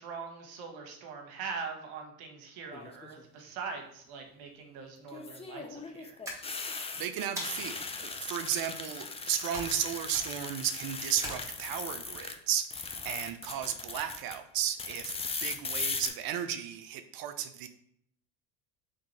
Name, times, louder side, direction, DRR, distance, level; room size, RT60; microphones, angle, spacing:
voice 1, 0.0-6.2, right 5 dB, 70° right, 3 dB, 1.2 m, -42 dB
sound 1, 2.7-3.2 5.1-12.4 12.6-14.4 14.8-16.1, left 4 dB, 15° left, 0.5 m, -38 dB
sound 2, 6.2-6.8 7.4-7.9 9.5-9.8 10.1-10.5 11.2-11.9, equal, 5° right, 1.9 m, -41 dB
voice 2, 6.6-17.7, right 10 dB, 50° right, 9 dB, 0.6 m, -34 dB
3.7 x 3.4 x 4.1 m, 0.69 s
hypercardioid pair, 70°, 46 cm